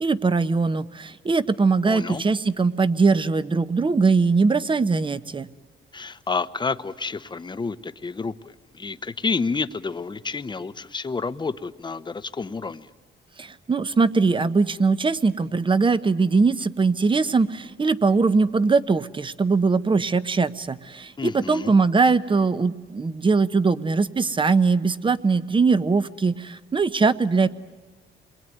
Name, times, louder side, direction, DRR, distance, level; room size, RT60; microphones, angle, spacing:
voice 1, 0.0-5.5 13.4-27.5, right 4 dB, 25° right, 14 dB, 0.9 m, -21 dB
voice 2, 1.8-2.2 5.9-12.9 21.2-21.7, left 4 dB, 20° left, 13 dB, 0.9 m, -29 dB
27.5 x 22.0 x 9.3 m, 1.3 s
cardioid pair, 90°, 20 cm